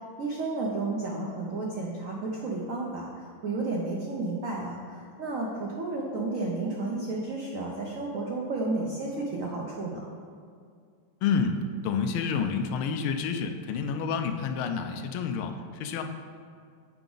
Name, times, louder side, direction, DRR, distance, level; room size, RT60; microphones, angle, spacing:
voice 1, 0.2-3.1 3.4-10.0, right 3 dB, 75° right, -2 dB, 0.7 m, -32 dB
voice 2, 11.2-16.0, left 5 dB, 80° left, 6 dB, 1.4 m, -29 dB
7.8 x 5.0 x 3.8 m, 2.2 s
omnidirectional pair, 2.4 m